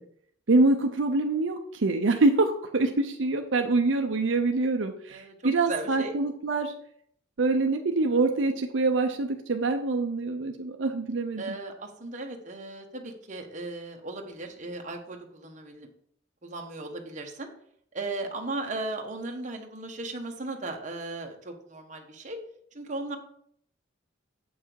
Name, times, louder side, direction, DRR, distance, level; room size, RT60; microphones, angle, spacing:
voice 1, 0.5-6.7 7.4-11.4, right 3 dB, 75° right, 5 dB, 0.7 m, -25 dB
voice 2, 5.1-6.1 11.4-15.9 16.4-17.5 17.9-22.4 22.7-23.2, right 2 dB, 40° right, 2 dB, 1.2 m, -36 dB
8.1 x 6.0 x 4.6 m, 0.66 s
head